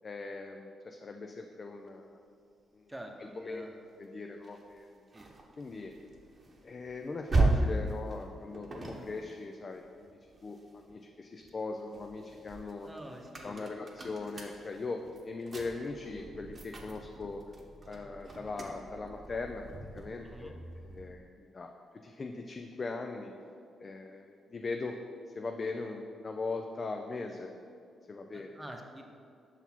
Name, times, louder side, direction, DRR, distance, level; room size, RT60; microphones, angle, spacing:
voice 1, 0.0-2.2 2.7-2.9 3.2-3.7 4.0-5.0 5.6-5.9 6.6-12.9 13.4-17.4 17.9-20.6 20.8-21.7 22.0-23.3 23.8-25.0 25.3-27.5 28.1-28.5, left 3 dB, 45° left, 3 dB, 0.4 m, -40 dB
voice 2, 2.9-3.9 5.1-5.3 12.8-13.7 20.2-20.5 28.3-29.0, right 1 dB, 15° right, 2 dB, 0.8 m, -47 dB
sound 1, 4.4-11.0 11.4-21.2, right 2 dB, 45° right, 0.9 m, -37 dB
5.7 x 3.9 x 4.4 m, 2.4 s
supercardioid pair, 50°, 0 cm